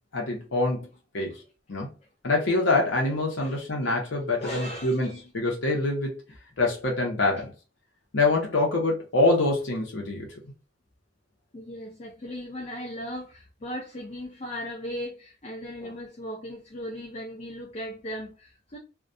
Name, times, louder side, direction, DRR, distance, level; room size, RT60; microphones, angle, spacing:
voice 1, 0.1-0.9 1.1-1.3 1.7-1.9 2.2-6.1 6.6-7.5 8.1-10.3, left 2 dB, 75° left, 0.8 m, -25 dB
voice 2, 4.4-5.2 11.5-18.8, equal, 35° left, 0.4 m, -37 dB
2.3 x 2.2 x 2.5 m
head